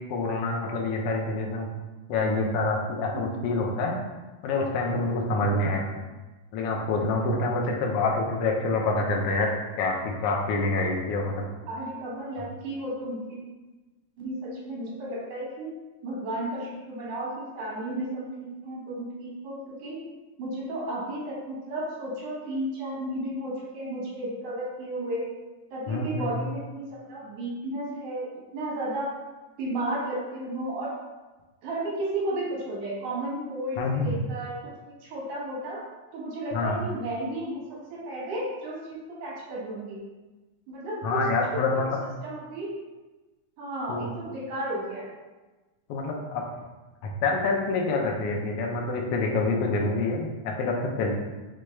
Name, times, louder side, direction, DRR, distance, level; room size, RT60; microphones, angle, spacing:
voice 1, 0.1-1.7 2.1-4.0 4.4-5.9 6.5-9.5 9.8-11.4 25.9-26.3 33.8-34.1 36.5-36.8 41.0-41.8 43.9-44.1 45.9-46.4 47.0-51.1, left 3 dB, 80° left, -1 dB, 1.3 m, -26 dB
voice 2, 3.1-3.4 5.4-5.8 11.7-13.4 14.2-15.7 16.0-20.0 20.4-25.3 25.7-28.3 28.5-29.1 29.6-30.9 31.6-34.7 35.0-35.8 36.1-37.7 37.9-40.0 40.7-41.2 41.5-41.9 42.2-42.7 43.6-45.1, right 1 dB, 85° right, -6 dB, 2.8 m, -33 dB
6.0 x 2.3 x 3.1 m, 1.2 s
omnidirectional pair, 3.3 m